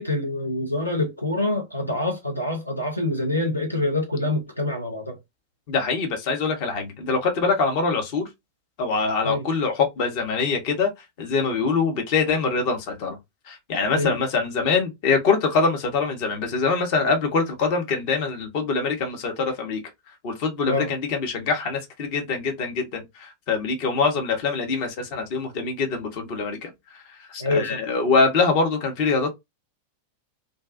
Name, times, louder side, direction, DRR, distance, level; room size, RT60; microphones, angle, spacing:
voice 1, 0.0-5.2 9.2-9.5 13.9-14.1 20.7-20.9 27.4-27.8, left 2 dB, 90° left, 0.7 m, -26 dB
voice 2, 5.7-8.3 8.8-10.9 11.2-13.2 13.5-19.8 20.2-26.7 27.3-29.3, left 4 dB, 45° left, 0.8 m, -24 dB
2.4 x 2.2 x 2.4 m
figure-of-eight pair, 90°, 0 cm